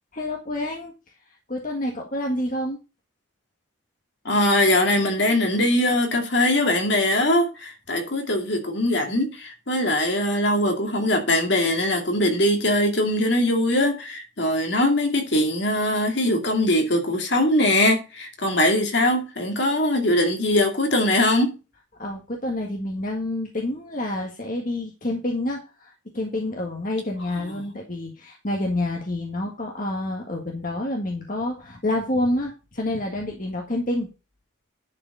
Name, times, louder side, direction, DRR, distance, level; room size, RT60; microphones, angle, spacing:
voice 1, 0.1-0.9 1.5-2.8 22.0-34.1, left 1 dB, 40° left, 1.7 m, -28 dB
voice 2, 4.2-21.6 27.3-27.6, left 1 dB, 60° left, 2.5 m, -21 dB
10.5 x 5.1 x 5.5 m
head